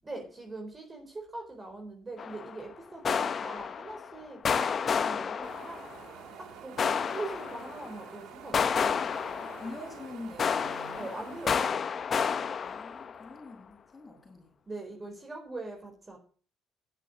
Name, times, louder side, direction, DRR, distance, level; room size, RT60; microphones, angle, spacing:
voice 1, 0.0-5.9 6.4-9.0 10.9-11.9 14.7-16.2, right 2 dB, 20° right, 4.4 m, -42 dB
sound 1, 2.2-2.6 3.0-4.1 4.4-6.0 6.8-7.9 8.5-10.0 10.4-13.3, left 6 dB, 40° left, 0.8 m, -31 dB
Wind, 5.4-11.7, right 9 dB, 70° right, 1.7 m, -48 dB
voice 2, 9.4-11.1 12.6-14.5, left 2 dB, 20° left, 6.2 m, -45 dB
11.0 x 7.5 x 7.3 m
cardioid pair, 95°, 0 cm